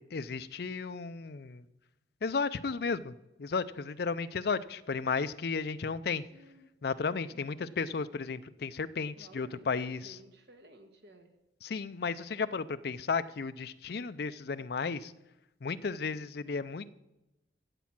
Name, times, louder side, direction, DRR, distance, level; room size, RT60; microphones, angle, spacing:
voice 1, 0.1-1.6 2.2-3.1 3.4-6.2 6.8-10.1 11.6-15.1 15.6-16.9, left 5 dB, 55° left, 13 dB, 0.5 m, -34 dB
voice 2, 6.3-6.7 7.3-7.9 9.2-11.3, equal, 60° right, 6 dB, 1.5 m, -56 dB
16.0 x 7.3 x 6.0 m, 0.97 s
head